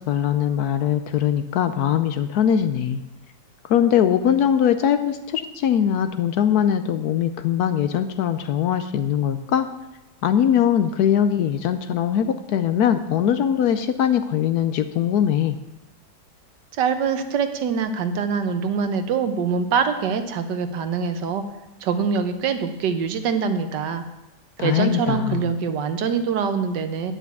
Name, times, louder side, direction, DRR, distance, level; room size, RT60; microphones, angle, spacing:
voice 1, 0.1-3.0 3.7-9.7 10.2-15.6 24.6-25.5, left 9 dB, 70° left, 9 dB, 1.0 m, -21 dB
voice 2, 16.7-21.4 21.8-24.0 24.6-27.1, right 6 dB, 75° right, 9 dB, 1.4 m, -24 dB
9.2 x 5.8 x 8.2 m, 0.98 s
omnidirectional pair, 1.9 m